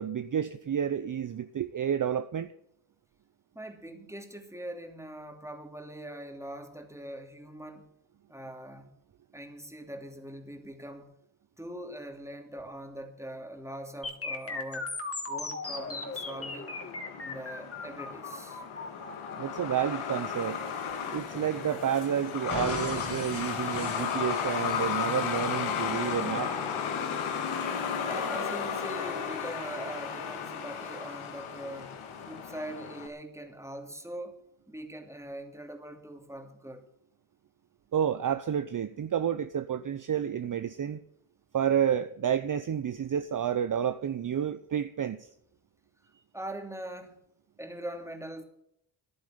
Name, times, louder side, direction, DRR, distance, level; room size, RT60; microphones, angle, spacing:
voice 1, 0.0-2.5 19.4-20.6 21.1-26.5 37.9-41.0 41.5-45.3, right 9 dB, 40° right, 0.7 m, -30 dB
voice 2, 3.5-7.9 8.3-8.9 9.3-11.1 11.6-14.9 15.3-16.8 17.2-18.6 28.1-32.0 32.3-34.4 34.7-36.8 46.3-47.2 47.6-48.4, right 1 dB, 5° right, 2.7 m, -42 dB
sound 1, 14.0-22.0 22.5-25.0, left 3 dB, 30° left, 3.0 m, -39 dB
Truck, 15.6-33.1, left 7 dB, 85° left, 2.0 m, -34 dB
10.5 x 9.6 x 9.1 m
cardioid pair, 65°, 48 cm